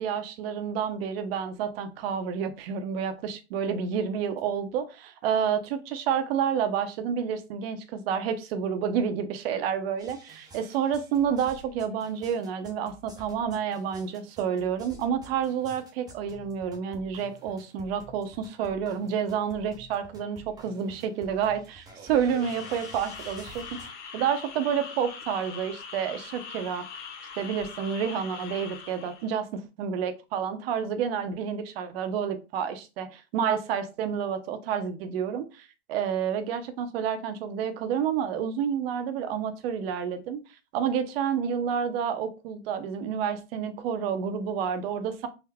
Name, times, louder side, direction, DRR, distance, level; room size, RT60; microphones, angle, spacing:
voice 1, 0.0-26.9 27.4-40.4 40.7-45.3, right 7 dB, 50° right, 0.7 m, -29 dB
sound 1, 10.0-23.9, right 2 dB, 10° right, 0.6 m, -50 dB
sound 2, 22.4-29.3, left 6 dB, 65° left, 1.0 m, -42 dB
3.6 x 2.0 x 3.4 m
hypercardioid pair, 120°, 37 cm